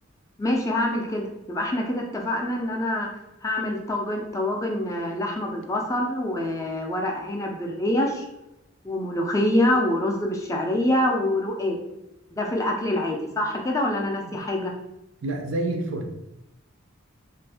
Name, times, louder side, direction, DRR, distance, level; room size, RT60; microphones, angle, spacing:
voice 1, 0.4-3.1 3.4-8.3 8.8-11.8 12.3-14.7, left 1 dB, 15° left, 0 dB, 0.3 m, -25 dB
voice 2, 15.2-16.1, right 2 dB, 60° right, 4 dB, 0.4 m, -28 dB
2.6 x 2.5 x 3.4 m, 0.90 s
head